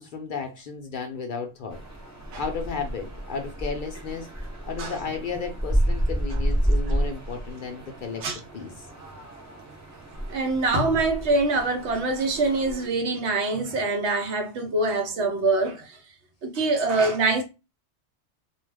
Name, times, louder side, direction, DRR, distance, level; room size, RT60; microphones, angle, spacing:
voice 1, 0.0-1.8 2.4-4.3 4.7-8.3 8.5-8.9, left 5 dB, 60° left, 0.6 m, -33 dB
sound 1, 1.7-12.9, right 1 dB, 20° right, 0.6 m, -30 dB
voice 2, 10.3-16.0 16.4-17.4, right 3 dB, 75° right, 1.0 m, -24 dB
2.3 x 2.3 x 3.3 m
omnidirectional pair, 1.2 m